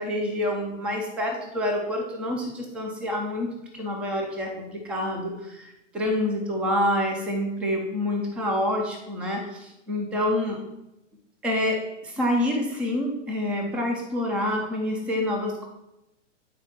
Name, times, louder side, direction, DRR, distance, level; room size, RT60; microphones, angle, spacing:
voice 1, 0.0-3.5 3.7-10.6 11.4-15.7, left 1 dB, 5° right, 2 dB, 0.4 m, -27 dB
11.0 x 4.4 x 5.7 m, 0.90 s
hypercardioid pair, 140°, 37 cm